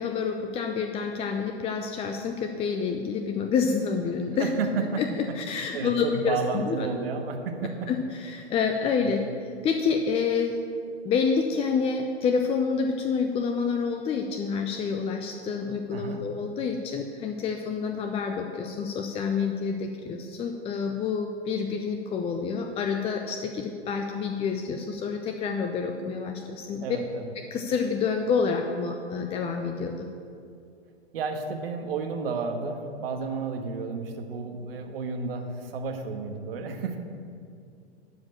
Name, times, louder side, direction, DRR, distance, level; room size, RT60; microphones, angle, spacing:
voice 1, 0.0-4.5 5.0-6.9 7.9-9.2 9.6-10.6 11.0-27.0 27.5-30.1, left 5 dB, 20° left, 4 dB, 0.6 m, -28 dB
voice 2, 4.4-5.0 5.3-7.9 9.0-9.2 15.9-16.2 26.8-27.3 31.1-37.0, right 4 dB, 60° right, 4 dB, 1.5 m, -32 dB
12.0 x 5.2 x 8.7 m, 2.4 s
figure-of-eight pair, 105°, 33 cm